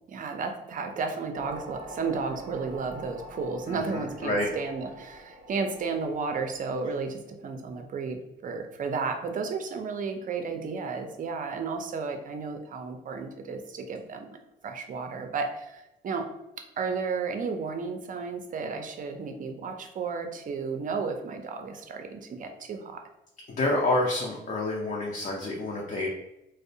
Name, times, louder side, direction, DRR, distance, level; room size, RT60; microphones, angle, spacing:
voice 1, 0.1-14.4 14.6-16.3 16.8-23.0, right 4 dB, 40° right, 5 dB, 0.4 m, -33 dB
sound 1, 1.3-7.0, right 1 dB, 25° right, 0.8 m, -45 dB
voice 2, 3.7-4.5 23.6-26.1, left 2 dB, 40° left, -2 dB, 0.5 m, -28 dB
2.5 x 2.0 x 2.6 m, 0.92 s
cardioid pair, 90°, 20 cm